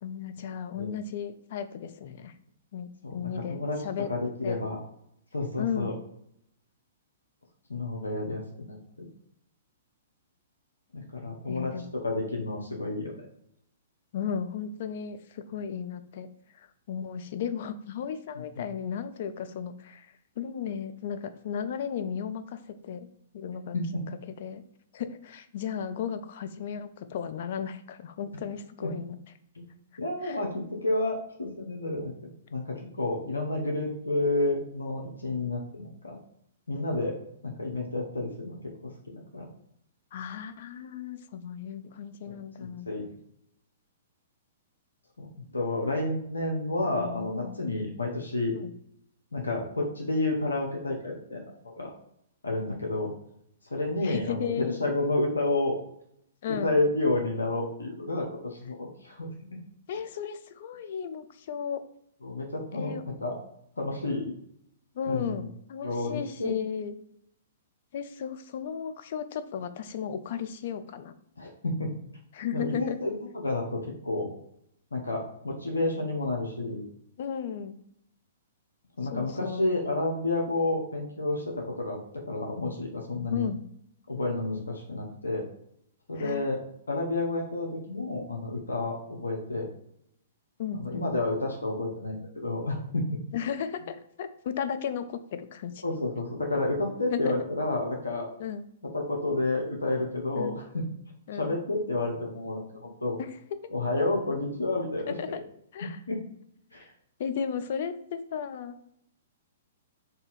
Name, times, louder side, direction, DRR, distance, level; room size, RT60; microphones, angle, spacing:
voice 1, 0.0-2.3 2.7-4.1 4.4-4.6 5.6-6.0 11.5-11.9 14.1-16.3 16.5-23.1 23.3-23.8 24.4-24.6 24.9-29.2 30.2-30.4 40.1-42.9 47.0-47.7 48.5-48.7 54.0-54.8 56.4-56.7 59.9-61.8 62.7-63.0 64.9-67.0 67.9-71.1 72.3-73.0 77.2-77.8 79.1-79.6 83.3-83.6 86.1-86.6 90.6-91.2 93.3-95.8 97.1-97.4 98.4-98.6 100.4-100.6 101.3-101.6 103.2-103.3 103.6-103.7 105.2-105.4 105.7-106.0 107.2-108.7, left 7 dB, 50° left, 10 dB, 0.3 m, -35 dB
voice 2, 3.0-3.8 4.1-4.8 5.3-5.9 7.7-8.8 10.9-11.7 12.0-13.3 18.3-18.6 23.7-24.0 28.8-28.9 29.6-29.7 30.0-32.1 32.5-36.2 36.7-37.2 37.4-38.6 38.8-38.9 39.3-39.5 42.6-43.1 45.2-48.5 49.3-51.4 51.8-51.9 52.4-53.1 53.7-55.7 56.5-59.3 62.2-63.4 63.8-64.2 65.0-65.3 65.8-66.5 71.4-71.9 72.5-74.3 74.9-76.8 79.0-82.0 82.3-83.5 84.1-85.4 86.1-86.6 86.9-89.7 90.8-93.0 95.8-98.3 98.9-100.8 101.4-103.2 103.7-105.4 106.1-106.2 106.7-106.8, left 2 dB, 80° left, 0 dB, 0.7 m, -30 dB
2.6 x 2.5 x 4.0 m, 0.73 s
figure-of-eight pair, 115°, 0 cm